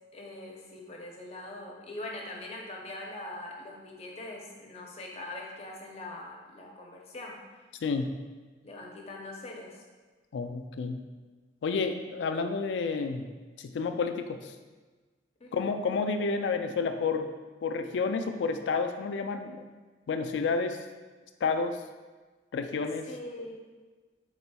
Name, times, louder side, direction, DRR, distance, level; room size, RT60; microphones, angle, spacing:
voice 1, 0.1-7.4 8.6-9.8 15.4-15.7 23.1-23.6, left 2 dB, 35° left, -1 dB, 0.6 m, -42 dB
voice 2, 7.8-8.1 10.3-11.0 11.6-13.3 13.6-14.5 15.5-17.3 17.6-19.7 20.1-20.8 21.4-21.8 22.5-23.1, left 4 dB, 85° left, 7 dB, 0.3 m, -30 dB
4.1 x 4.1 x 2.2 m, 1.3 s
head